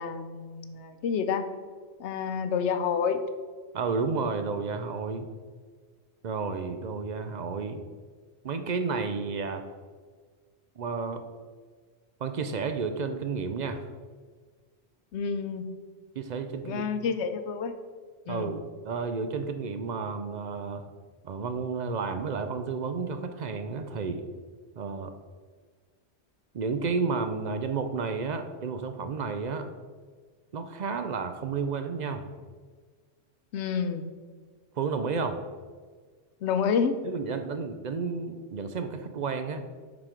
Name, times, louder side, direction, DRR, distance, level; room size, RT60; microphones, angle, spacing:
voice 1, 0.0-1.5 2.0-3.2 15.1-15.7 16.6-17.7 18.3-18.6 33.5-34.0 36.4-37.0, left 6 dB, 85° left, 9 dB, 0.9 m, -29 dB
voice 2, 3.7-5.3 6.2-7.8 8.4-9.6 10.8-11.2 12.2-13.9 16.1-16.8 18.3-20.8 21.2-24.3 24.8-25.1 26.5-29.7 30.5-32.3 34.8-35.4 37.0-39.6, right 4 dB, 55° right, 8 dB, 0.5 m, -31 dB
7.3 x 4.1 x 5.0 m, 1.5 s
omnidirectional pair, 1.1 m